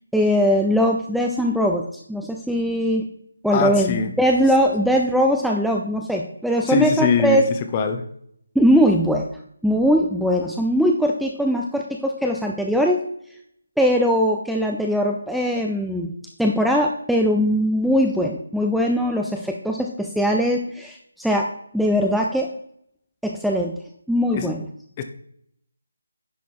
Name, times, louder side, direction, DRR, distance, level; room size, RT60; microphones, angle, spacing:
voice 1, 0.1-3.1 3.4-7.4 8.5-9.3 9.6-13.0 13.8-16.1 16.4-21.5 21.7-22.5 23.2-23.8 24.1-24.6, equal, ahead, 0 dB, 0.5 m, -20 dB
voice 2, 3.5-4.1 6.7-7.4 7.7-8.1 24.3-24.5 25.0-25.1, left 6 dB, 25° left, 7 dB, 0.9 m, -22 dB
10.0 x 5.3 x 4.7 m, 0.69 s
figure-of-eight pair, 155°, 0 cm